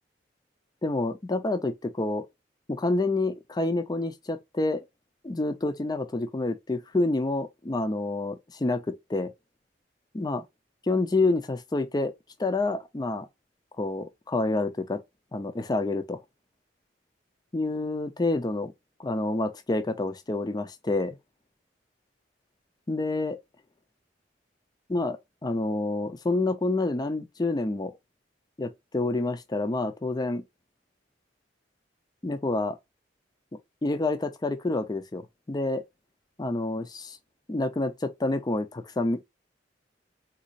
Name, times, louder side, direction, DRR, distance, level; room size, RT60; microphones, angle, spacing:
voice 1, 0.8-2.3 2.7-4.8 5.2-9.3 10.1-10.4 10.8-12.1 12.4-13.3 13.8-15.0 15.3-16.2 17.5-18.7 19.0-21.2 22.9-23.4 24.9-28.0 28.6-30.4 32.2-32.8 33.8-35.8 36.4-37.2 37.5-39.2, left 2 dB, 20° left, 0.5 m, -28 dB
3.9 x 2.3 x 2.5 m
head